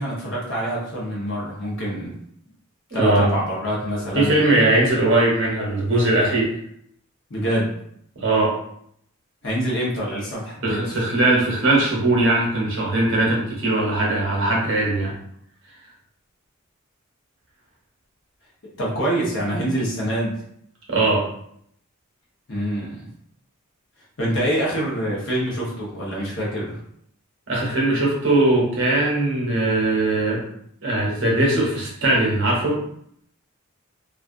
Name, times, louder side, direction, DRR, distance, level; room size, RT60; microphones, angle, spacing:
voice 1, 0.0-2.2 2.9-4.4 7.3-7.8 9.4-11.0 18.8-20.4 22.5-23.1 24.2-26.8, equal, 55° left, -5 dB, 0.9 m, -25 dB
voice 2, 2.9-3.3 4.1-6.5 8.2-8.6 10.6-15.1 20.9-21.3 27.5-30.4 30.8-32.8, right 2 dB, 60° right, -3 dB, 0.8 m, -20 dB
2.5 x 2.3 x 2.5 m, 0.68 s
head